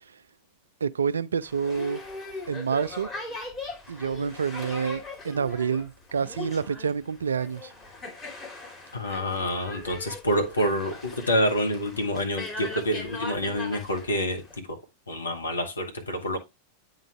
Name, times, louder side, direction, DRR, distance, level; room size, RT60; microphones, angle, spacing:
voice 1, 0.8-2.0 2.5-3.1 3.9-7.7, right 6 dB, 70° right, 0.3 m, -28 dB
Boat Water vehicle, 1.4-14.6, left 2 dB, 15° left, 2.7 m, -40 dB
voice 2, 8.9-14.8 15.1-16.4, equal, 75° left, 1.3 m, -27 dB
8.9 x 3.8 x 3.3 m
figure-of-eight pair, 90°, 0 cm